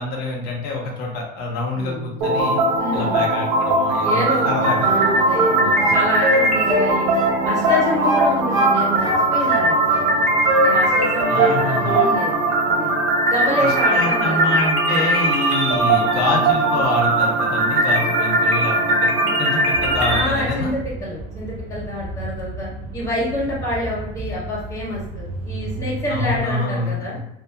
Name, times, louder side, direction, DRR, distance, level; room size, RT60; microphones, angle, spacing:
voice 1, 0.0-2.6 2.9-4.9 5.6-5.9 11.3-12.0 13.6-18.7 19.4-20.7 26.1-27.2, left 2 dB, 65° left, 0 dB, 0.8 m, -26 dB
voice 2, 1.7-2.2 2.8-3.3 4.0-4.5 4.8-7.1 7.4-10.2 10.6-12.9 13.3-14.7 18.9-19.4 20.1-27.2, left 1 dB, 20° left, -8 dB, 1.5 m, -27 dB
sound 1, 2.2-20.2, right 2 dB, 90° right, 0.8 m, -19 dB
sound 2, 4.8-5.6 5.8-7.4 7.6-8.8 9.0-10.1 10.4-11.6 11.8-12.1, equal, 15° right, 0.8 m, -23 dB
sound 3, 19.7-26.4, right 1 dB, 45° right, 0.4 m, -32 dB
2.5 x 2.5 x 2.3 m, 0.81 s
cardioid pair, 125°, 18 cm